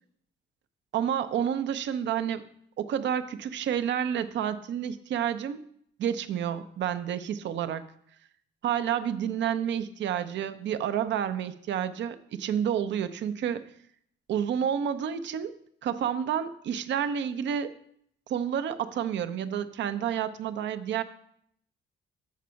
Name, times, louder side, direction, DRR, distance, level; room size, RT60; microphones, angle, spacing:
voice 1, 0.9-2.4 2.8-5.6 6.0-7.8 8.6-13.6 14.3-15.5 15.8-17.7 18.3-21.0, right 9 dB, 65° right, 11 dB, 0.6 m, -29 dB
7.4 x 5.1 x 5.7 m, 0.69 s
cardioid pair, 90°, 20 cm